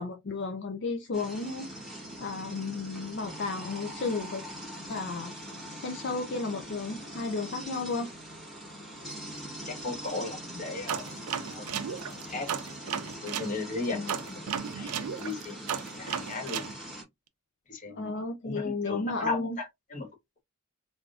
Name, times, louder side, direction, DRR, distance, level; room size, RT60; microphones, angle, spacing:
voice 1, 0.0-1.7 2.2-4.4 4.9-5.3 5.7-8.1 13.9-14.2 17.9-19.6, left 3 dB, 50° left, 0.4 m, -33 dB
sound 1, 1.1-17.0, right 1 dB, ahead, 1.1 m, -42 dB
voice 2, 9.6-11.2 11.5-11.8 12.3-12.5 13.2-14.4 14.7-16.6 17.7-20.1, left 3 dB, 35° left, 0.9 m, -36 dB
sound 2, 10.9-13.5 14.1-16.7, right 8 dB, 90° right, 0.5 m, -34 dB
3.4 x 2.5 x 2.4 m
head